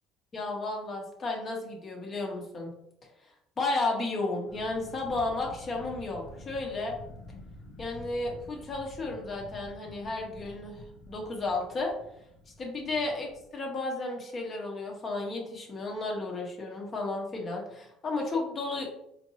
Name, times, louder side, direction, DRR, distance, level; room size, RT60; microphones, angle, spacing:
voice 1, 0.3-2.7 3.6-7.0 7.8-11.9 12.6-18.9, left 2 dB, 35° left, 0 dB, 1.2 m, -33 dB
Fantasy Train Passage, 4.5-13.5, left 1 dB, 85° left, 1.1 m, -49 dB
4.3 x 2.8 x 3.1 m, 0.76 s
supercardioid pair, 100°, 0 cm